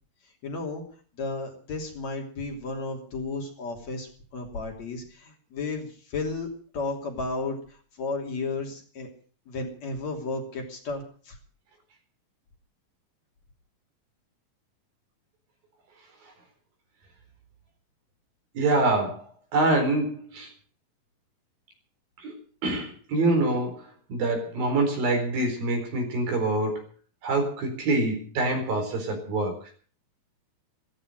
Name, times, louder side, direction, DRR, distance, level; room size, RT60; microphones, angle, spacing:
voice 1, 0.4-0.8 1.2-6.5 6.7-7.6 8.0-9.1 9.5-11.4, left 3 dB, 50° left, 2 dB, 4.1 m, -33 dB
voice 2, 18.5-19.2 19.5-20.5 22.2-22.3 22.6-23.8 24.1-26.8 27.2-29.5, right 2 dB, 80° right, 4 dB, 6.1 m, -25 dB
14.5 x 14.5 x 6.4 m, 0.43 s
omnidirectional pair, 4.1 m